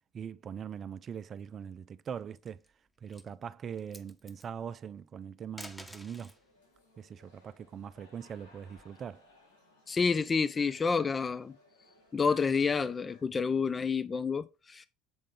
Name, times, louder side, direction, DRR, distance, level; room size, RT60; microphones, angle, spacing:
voice 1, 0.1-2.6 3.0-6.3 7.0-9.2, right 7 dB, 40° right, 0.4 m, -42 dB
sound 1, 2.2-2.7 3.1-3.3 3.7-4.5 5.4-6.4 7.9-9.1, left 1 dB, 10° left, 1.1 m, -50 dB
sound 2, 6.0-13.2, left 2 dB, 90° left, 3.9 m, -62 dB
voice 2, 9.9-11.5 12.1-14.9, left 5 dB, 25° left, 0.4 m, -29 dB
7.7 x 3.7 x 3.8 m
hypercardioid pair, 70°, 0 cm